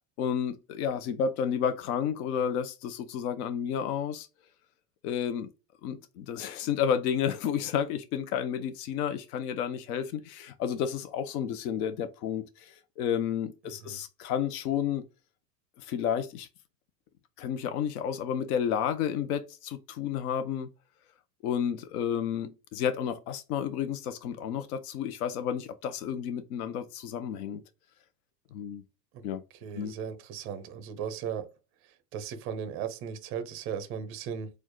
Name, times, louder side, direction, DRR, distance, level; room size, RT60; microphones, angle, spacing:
voice 1, 0.2-4.3 5.0-5.5 5.8-15.0 15.8-16.5 17.4-20.7 21.4-27.6 28.5-28.8 29.2-29.4 29.8-29.9, left 8 dB, 65° left, 0.7 m, -31 dB
voice 2, 29.6-31.5 32.1-34.5, right 7 dB, 30° right, 0.5 m, -36 dB
4.3 x 2.4 x 3.0 m
supercardioid pair, 145°, 48 cm